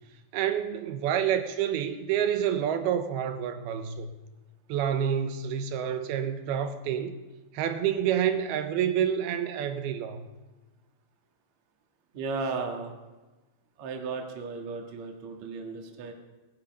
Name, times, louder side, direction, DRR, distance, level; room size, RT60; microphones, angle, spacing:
voice 1, 0.3-4.1 4.7-7.2 7.5-10.3, right 9 dB, 75° right, 9 dB, 2.6 m, -28 dB
voice 2, 12.1-12.9 13.8-16.1, right 4 dB, 50° right, 2 dB, 2.6 m, -35 dB
19.5 x 12.5 x 5.4 m, 1.2 s
omnidirectional pair, 5.0 m